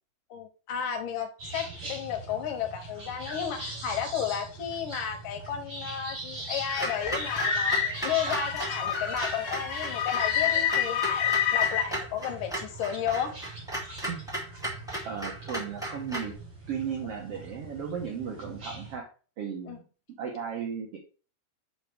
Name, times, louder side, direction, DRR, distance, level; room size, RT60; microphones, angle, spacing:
voice 1, 0.3-13.3 19.7-19.8, left 8 dB, 70° left, 5 dB, 2.4 m, -33 dB
sound 1, 1.4-19.0, right 2 dB, 35° right, 3.9 m, -42 dB
sound 2, 6.7-11.9, left 8 dB, 50° left, 2.2 m, -28 dB
Clock, 6.8-16.3, right 1 dB, ahead, 0.9 m, -36 dB
voice 2, 15.0-16.4 16.7-19.1 19.4-19.8 20.2-21.0, right 7 dB, 80° right, 1 dB, 1.3 m, -35 dB
6.3 x 5.5 x 3.5 m, 0.36 s
omnidirectional pair, 4.3 m